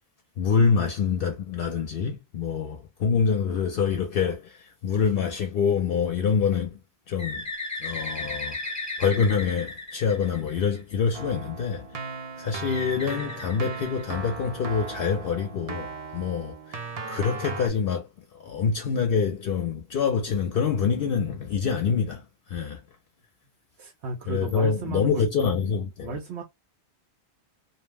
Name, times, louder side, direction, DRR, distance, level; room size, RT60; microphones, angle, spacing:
voice 1, 0.4-6.8 7.1-7.5 7.8-12.1 12.4-18.1 18.3-22.8 24.3-26.2, left 6 dB, 65° left, 0.7 m, -26 dB
Bird, 7.2-10.9 12.7-14.5, left 2 dB, 15° left, 0.9 m, -35 dB
Keyboard (musical), 11.1-17.7, right 4 dB, 45° right, 0.5 m, -37 dB
voice 2, 23.8-25.6 26.0-26.4, right 4 dB, 85° right, 0.9 m, -34 dB
2.6 x 2.0 x 3.2 m
omnidirectional pair, 1.1 m